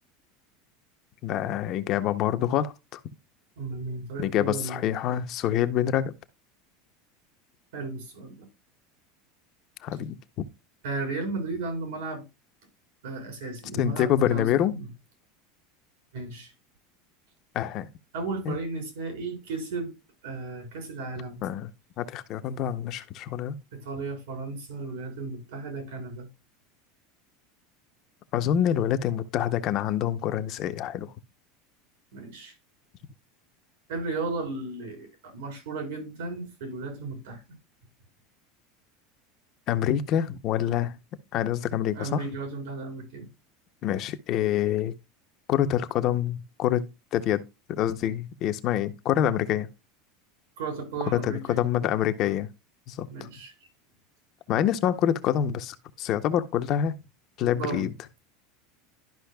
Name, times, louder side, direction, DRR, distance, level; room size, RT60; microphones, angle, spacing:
voice 1, 1.2-3.0 4.2-6.1 9.8-10.2 13.7-14.7 17.5-17.9 18.5-18.6 21.4-21.7 22.0-23.5 28.3-31.1 39.7-40.9 41.3-42.2 43.8-44.9 45.5-47.4 47.7-49.7 51.1-52.5 52.9-53.1 54.5-57.0 57.4-57.9, left 10 dB, 35° left, 0.6 m, -26 dB
voice 2, 3.6-4.8 7.7-8.5 10.8-12.2 13.0-14.9 16.1-16.5 18.1-19.9 20.2-21.4 23.7-26.3 32.1-32.6 33.9-37.4 41.9-43.3 50.6-51.7 53.1-53.7 57.5-57.9, right 3 dB, 85° right, 4.0 m, -35 dB
12.0 x 5.6 x 2.2 m
supercardioid pair, 175°, 0 cm